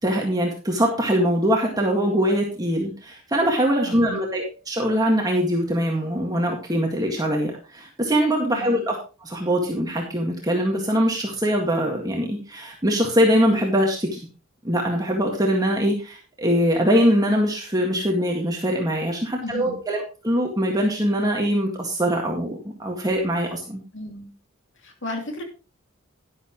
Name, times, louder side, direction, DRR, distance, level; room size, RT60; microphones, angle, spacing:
voice 1, 0.0-14.3 14.6-23.8, equal, 20° right, 0 dB, 1.9 m, -22 dB
voice 2, 3.8-4.2 8.5-8.8 19.4-19.8 23.9-24.3 24.8-25.4, left 1 dB, 60° left, 4 dB, 2.8 m, -34 dB
11.0 x 11.0 x 3.1 m, 0.33 s
head